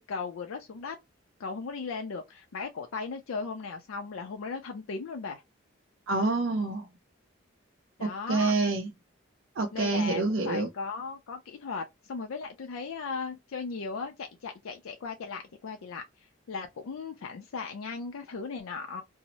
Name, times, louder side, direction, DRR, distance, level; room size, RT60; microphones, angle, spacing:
voice 1, 0.1-1.0 1.4-5.4 8.0-8.5 9.7-16.0 16.5-19.0, left 4 dB, 90° left, 0.4 m, -37 dB
voice 2, 6.1-6.9 8.0-8.9 9.6-10.7, right 3 dB, 70° right, 0.5 m, -27 dB
2.7 x 2.0 x 2.8 m
head